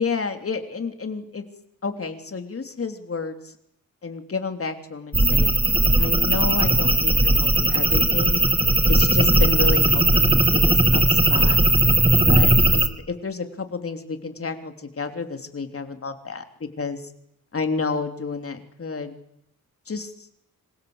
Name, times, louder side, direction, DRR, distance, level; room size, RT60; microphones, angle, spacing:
voice 1, 0.0-1.4 1.8-3.5 4.0-5.5 6.0-8.4 8.9-11.6 12.2-16.4 16.8-17.1 17.5-19.1 19.9-20.3, left 4 dB, 40° left, 6 dB, 3.2 m, -30 dB
sound 1, 5.1-12.9, right 2 dB, 15° right, 2.4 m, -18 dB
27.0 x 26.5 x 8.0 m, 0.76 s
wide cardioid pair, 135°, 35 cm